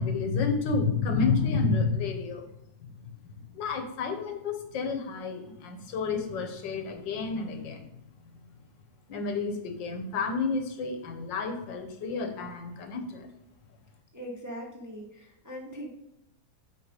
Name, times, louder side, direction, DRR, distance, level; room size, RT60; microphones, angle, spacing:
voice 1, 0.0-2.5 2.8-7.9 8.3-8.4 9.1-13.3, left 4 dB, 75° left, 6 dB, 1.7 m, -30 dB
voice 2, 14.1-15.9, equal, 10° right, -1 dB, 0.9 m, -40 dB
8.0 x 5.3 x 5.0 m, 0.84 s
omnidirectional pair, 2.0 m